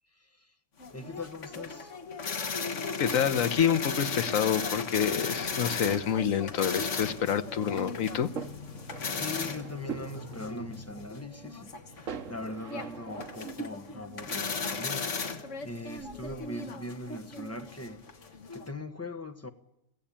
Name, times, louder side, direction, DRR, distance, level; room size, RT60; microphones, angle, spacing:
voice 1, 0.2-0.5 0.9-1.9 9.1-19.5, left 2 dB, 10° left, 1.2 m, -41 dB
sound 1, 0.8-18.7, left 4 dB, 65° left, 1.8 m, -36 dB
voice 2, 3.0-8.3, left 8 dB, 80° left, 1.4 m, -27 dB
sound 2, 7.4-13.5, right 6 dB, 70° right, 1.6 m, -44 dB
23.0 x 15.5 x 8.8 m
omnidirectional pair, 1.4 m